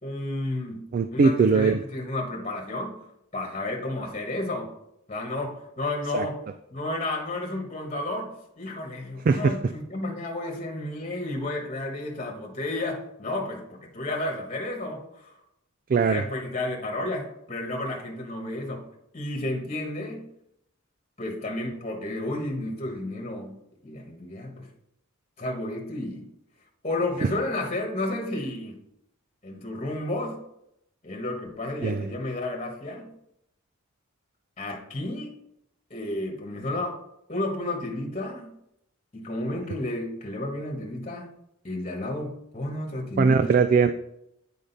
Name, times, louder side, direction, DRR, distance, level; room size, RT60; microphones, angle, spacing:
voice 1, 0.0-3.0 3.3-4.7 5.1-6.4 6.7-15.3 16.0-18.9 19.1-20.3 21.2-23.6 23.8-24.7 25.4-26.3 26.8-28.8 29.4-30.4 31.0-33.1 34.6-35.3 35.9-37.0 37.3-38.5 39.1-41.3 41.6-43.5, left 1 dB, 30° left, 0 dB, 1.4 m, -32 dB
voice 2, 0.9-1.8 6.1-6.3 9.3-9.5 15.9-16.2 31.8-32.1 43.2-43.9, right 5 dB, 40° right, 9 dB, 0.3 m, -20 dB
8.6 x 5.1 x 4.1 m, 0.79 s
head